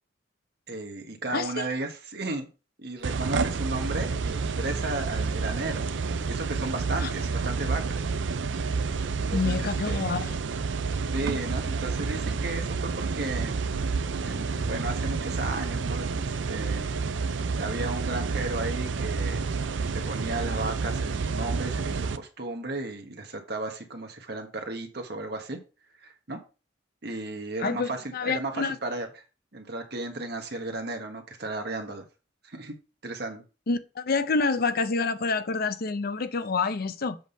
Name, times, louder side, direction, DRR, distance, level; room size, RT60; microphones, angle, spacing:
voice 1, 0.7-2.5 2.8-5.9 6.2-8.0 9.2-10.0 11.1-13.6 14.2-16.9 17.5-19.4 19.9-25.6 26.0-26.4 27.0-29.1 29.5-32.0 32.4-32.7 33.0-33.4, right 2 dB, 60° right, 1.5 m, -34 dB
voice 2, 1.3-1.7 7.0-7.1 9.3-10.4 27.6-28.8 33.7-37.2, left 4 dB, 55° left, 0.6 m, -28 dB
sound 1, 3.0-22.2, right 4 dB, 85° right, 0.5 m, -29 dB
7.7 x 3.5 x 5.6 m
head